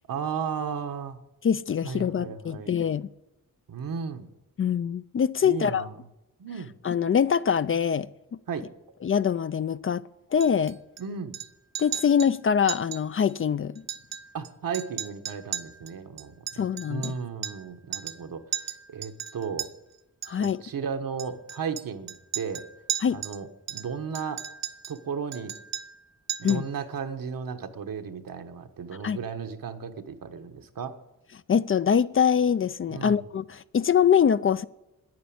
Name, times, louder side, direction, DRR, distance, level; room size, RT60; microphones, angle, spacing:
voice 1, 0.1-1.2 1.8-2.7 3.7-4.3 5.4-6.0 6.4-6.7 8.5-8.7 11.0-11.4 14.3-18.4 18.9-19.7 20.3-22.6 23.1-24.4 24.9-25.5 26.4-31.0 32.9-33.3, right 6 dB, 75° right, 1.3 m, -35 dB
voice 2, 1.4-3.1 4.6-5.9 6.8-8.1 9.0-10.0 10.3-10.8 11.8-13.7 16.6-17.1 20.3-20.6 23.0-23.2 26.4-26.6 29.0-29.2 31.5-34.6, left 7 dB, 40° left, 0.4 m, -24 dB
Chink clink, 10.4-11.0 11.3-11.5 11.7-12.3 12.7-13.0 13.3-13.4 13.8-14.5 14.7-17.7 17.9-18.2 18.5-19.7 20.2-20.5 21.2-23.4 23.7-25.0 25.3-26.0 26.3-26.7, right 10 dB, 50° right, 1.0 m, -36 dB
10.5 x 9.5 x 8.6 m
wide cardioid pair, 110°, 34 cm